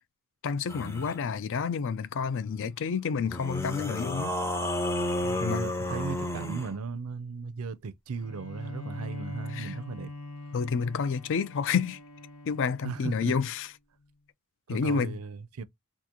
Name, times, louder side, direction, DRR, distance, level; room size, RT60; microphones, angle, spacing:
voice 1, 0.4-4.3 5.4-5.7 9.5-9.7 10.5-12.0 12.5-13.7 14.7-15.2, left 6 dB, 60° left, 0.4 m, -29 dB
sound 1, 0.7-1.2 3.3-6.8, left 1 dB, 15° left, 0.6 m, -31 dB
voice 2, 5.2-10.1 12.8-13.3 14.7-15.6, right 4 dB, 70° right, 0.5 m, -37 dB
Bowed string instrument, 8.2-13.6, left 2 dB, 90° left, 0.9 m, -43 dB
2.9 x 2.4 x 3.6 m
head